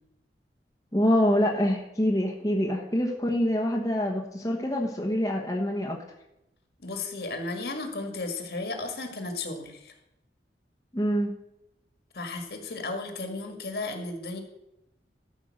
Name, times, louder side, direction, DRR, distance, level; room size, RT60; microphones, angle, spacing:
voice 1, 0.9-6.0 10.9-11.3, equal, 20° left, 0 dB, 1.1 m, -25 dB
voice 2, 6.8-9.9 12.1-14.4, left 3 dB, 60° left, 4 dB, 1.9 m, -34 dB
13.0 x 5.4 x 6.4 m, 0.86 s
head